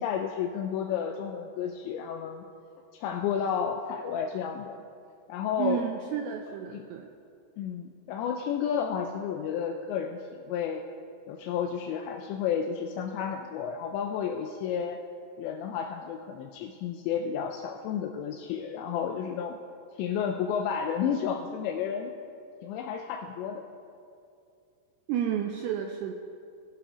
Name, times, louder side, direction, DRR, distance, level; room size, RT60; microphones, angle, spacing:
voice 1, 0.0-2.4 2.9-4.8 5.3-5.9 6.5-6.9 7.6-10.8 11.3-15.0 15.4-19.6 20.0-22.1 22.6-23.6, left 7 dB, 80° left, 3 dB, 2.8 m, -31 dB
voice 2, 5.6-7.1 25.1-26.1, right 9 dB, 85° right, 4 dB, 2.4 m, -31 dB
19.0 x 11.5 x 2.9 m, 2.5 s
omnidirectional pair, 5.3 m